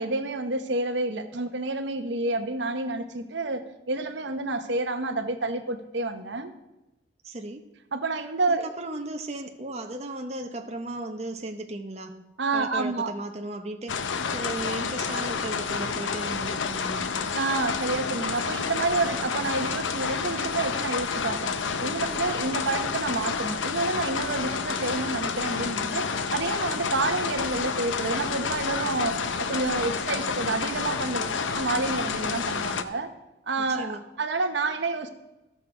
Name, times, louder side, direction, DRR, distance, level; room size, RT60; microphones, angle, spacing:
voice 1, 0.0-6.5 7.9-8.7 12.4-13.1 17.3-33.1 33.5-35.1, right 3 dB, 65° right, 9 dB, 0.9 m, -29 dB
voice 2, 7.2-7.7 8.5-12.2 12.5-17.1 33.6-34.0, right 2 dB, 35° right, 4 dB, 0.7 m, -36 dB
sound 1, 13.9-32.8, left 5 dB, 75° left, 0.7 m, -29 dB
14.5 x 6.5 x 4.8 m, 1.0 s
head